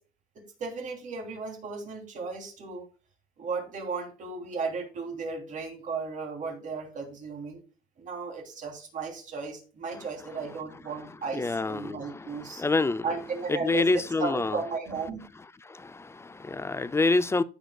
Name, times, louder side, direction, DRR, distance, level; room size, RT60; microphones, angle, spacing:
voice 1, 0.6-2.9 3.4-7.6 8.0-12.6 13.0-15.2, right 4 dB, 50° right, 3.1 m, -35 dB
voice 2, 11.3-13.0 13.5-14.6 15.7-17.4, left 3 dB, 15° left, 0.4 m, -27 dB
15.0 x 5.1 x 2.3 m
cardioid pair, 110°, 17 cm